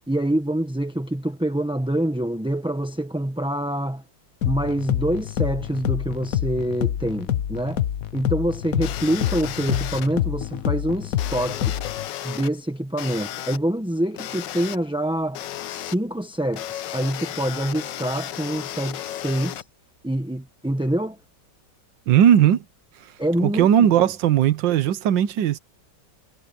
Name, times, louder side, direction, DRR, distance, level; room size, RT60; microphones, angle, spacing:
voice 1, 0.1-4.0 4.4-7.8 8.1-11.8 12.2-19.6 20.0-21.2 23.2-24.1, right 1 dB, 5° right, 0.7 m, -26 dB
sound 1, 4.4-12.1, left 11 dB, 60° left, 1.1 m, -27 dB
sound 2, 8.8-10.1 11.2-12.5 13.0-13.6 14.2-14.8 15.3-15.9 16.5-19.6, left 12 dB, 85° left, 1.4 m, -34 dB
voice 2, 22.1-22.6 23.4-25.6, right 10 dB, 85° right, 1.6 m, -18 dB
omnidirectional pair, 1.9 m